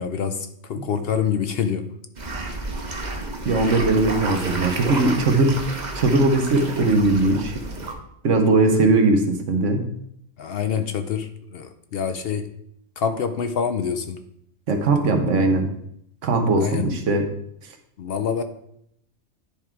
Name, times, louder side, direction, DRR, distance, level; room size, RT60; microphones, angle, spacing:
voice 1, 0.0-1.9 5.4-5.6 10.4-12.5 13.0-14.2 15.0-15.1 16.6-17.0 18.0-18.4, left 7 dB, 60° left, 9 dB, 0.7 m, -26 dB
sound 1, 2.1-7.9, right 2 dB, 40° right, 1.0 m, -31 dB
voice 2, 3.4-5.6 5.9-7.5 8.2-9.8 14.7-15.7 16.2-17.3, right 2 dB, 80° right, 4 dB, 1.4 m, -19 dB
10.0 x 3.7 x 4.5 m, 0.73 s
omnidirectional pair, 1.2 m